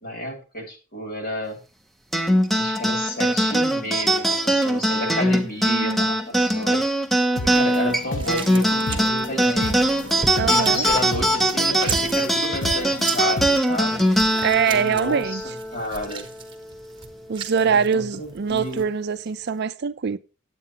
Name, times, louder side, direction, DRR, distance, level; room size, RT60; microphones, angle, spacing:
voice 1, 0.0-1.6 2.5-6.8 7.4-10.0 10.4-14.1 14.7-15.4 15.7-16.3 17.6-18.9, left 1 dB, 45° left, 2.8 m, -31 dB
sound 1, 2.1-16.9, right 1 dB, ahead, 0.7 m, -22 dB
voice 2, 5.7-6.1 10.3-10.9 14.3-15.4 17.3-20.2, right 6 dB, 50° right, 0.4 m, -23 dB
sound 2, 7.3-13.6, left 1 dB, 65° left, 1.3 m, -33 dB
sound 3, 7.4-18.8, right 5 dB, 25° right, 1.1 m, -38 dB
9.7 x 8.4 x 2.9 m
head